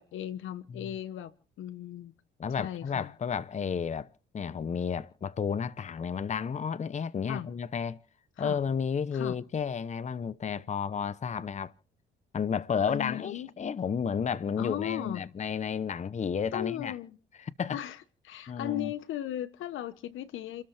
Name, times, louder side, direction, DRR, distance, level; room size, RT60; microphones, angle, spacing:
voice 1, 0.0-2.1 2.6-3.1 7.3-7.5 8.4-8.6 9.1-9.4 12.9-13.5 14.6-15.2 16.5-17.2 17.7-18.0 18.2-20.6, left 12 dB, 80° left, 1.2 m, -37 dB
voice 2, 2.4-8.0 8.4-11.7 12.3-17.0 17.4-17.8 18.5-18.9, left 6 dB, 35° left, 0.8 m, -32 dB
30.0 x 13.0 x 3.4 m
cardioid pair, 90°, 20 cm